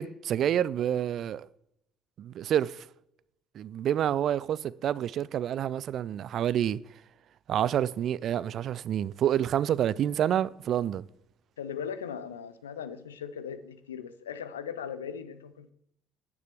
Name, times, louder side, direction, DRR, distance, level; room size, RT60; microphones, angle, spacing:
voice 1, 0.0-1.5 2.2-2.8 3.5-6.8 7.5-11.0, right 10 dB, 55° right, 0.4 m, -28 dB
voice 2, 11.6-15.7, left 7 dB, 85° left, 0.6 m, -38 dB
9.5 x 9.4 x 3.4 m
hypercardioid pair, 55°, 0 cm